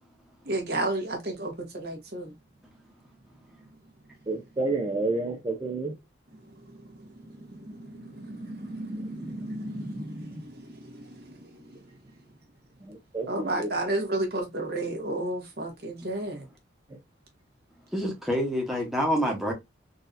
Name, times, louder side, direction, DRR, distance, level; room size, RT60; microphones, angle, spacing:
voice 1, 0.4-2.3 7.6-11.4 13.3-16.4, right 2 dB, 55° right, 1.2 m, -33 dB
voice 2, 4.3-6.0 7.6-10.4 12.8-13.7, right 2 dB, 20° right, 0.5 m, -32 dB
voice 3, 17.9-19.5, equal, ahead, 1.0 m, -27 dB
3.9 x 2.7 x 2.5 m
head